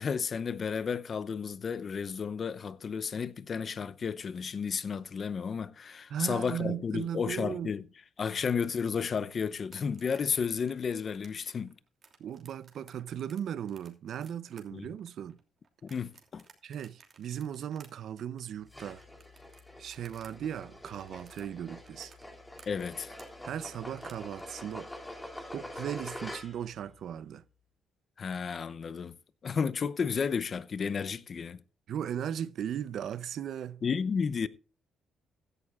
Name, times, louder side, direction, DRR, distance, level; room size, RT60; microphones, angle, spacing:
voice 1, 0.0-7.8 8.2-11.7 14.7-14.9 15.8-16.4 22.7-23.2 28.2-29.2 29.4-31.6 33.8-34.5, left 6 dB, 45° left, 0.7 m, -32 dB
voice 2, 6.1-7.7 12.2-15.4 16.6-19.0 19.8-22.1 23.4-24.9 25.5-27.4 31.9-33.8, right 9 dB, 70° right, 0.6 m, -37 dB
sound 1, 9.6-20.3 20.6-24.4, right 5 dB, 45° right, 2.9 m, -58 dB
sound 2, 18.7-26.8, left 1 dB, 10° left, 2.8 m, -45 dB
16.0 x 11.0 x 2.5 m
cardioid pair, 90°, 0 cm